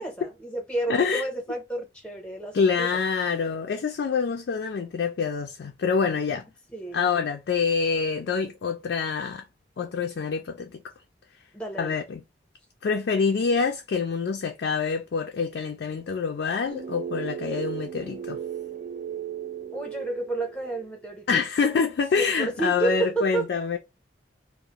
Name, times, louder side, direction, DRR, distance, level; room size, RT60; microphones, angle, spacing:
voice 1, 0.0-2.9 6.7-7.1 11.5-12.0 19.7-21.4 22.1-23.5, right 2 dB, 5° left, 0.7 m, -31 dB
voice 2, 0.9-1.2 2.5-6.5 6.9-9.4 9.8-10.8 11.8-12.2 12.8-18.4 21.3-23.8, left 5 dB, 70° left, 0.3 m, -26 dB
sound 1, 16.7-20.9, right 8 dB, 40° right, 0.3 m, -36 dB
2.4 x 2.0 x 2.8 m
head